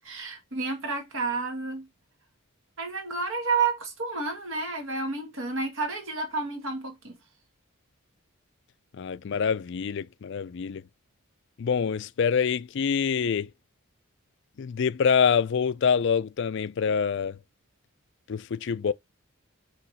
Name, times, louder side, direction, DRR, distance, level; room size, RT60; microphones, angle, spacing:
voice 1, 0.0-1.9 2.8-7.2, right 4 dB, 65° right, 1.8 m, -30 dB
voice 2, 9.0-10.8 11.6-13.5 14.6-17.4 18.3-18.9, left 6 dB, 55° left, 0.4 m, -26 dB
5.7 x 3.0 x 5.5 m
head